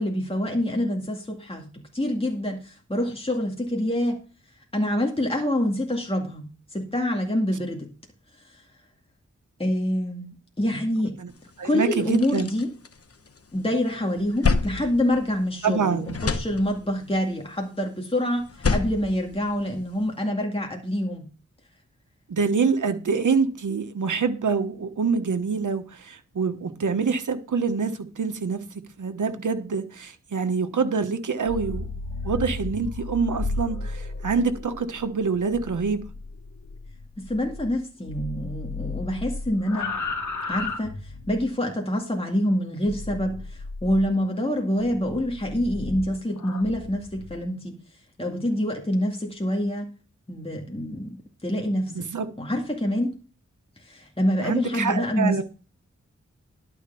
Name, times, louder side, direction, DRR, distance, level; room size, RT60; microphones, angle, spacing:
voice 1, 0.0-4.2 4.7-7.9 8.5-8.6 9.6-10.3 10.6-11.2 11.6-12.7 13.5-18.4 18.7-21.3 37.2-40.0 40.5-40.9 41.3-47.8 48.2-49.9 50.3-52.1 52.4-53.2 53.8-55.4, left 1 dB, 20° left, 2.2 m, -26 dB
sound 1, 11.4-11.5 11.9-13.6 13.9-15.8 16.0-17.1 18.4-20.0, left 4 dB, 55° left, 1.1 m, -28 dB
voice 2, 11.6-12.5 15.6-16.1 22.3-31.9 32.2-36.1 51.9-52.3 54.4-55.4, right 5 dB, 90° right, 1.3 m, -26 dB
sound 2, 31.3-37.8 38.1-41.5 42.9-44.1 44.8-47.4, left 3 dB, 90° left, 1.9 m, -34 dB
12.0 x 4.8 x 6.9 m
wide cardioid pair, 60°, 30 cm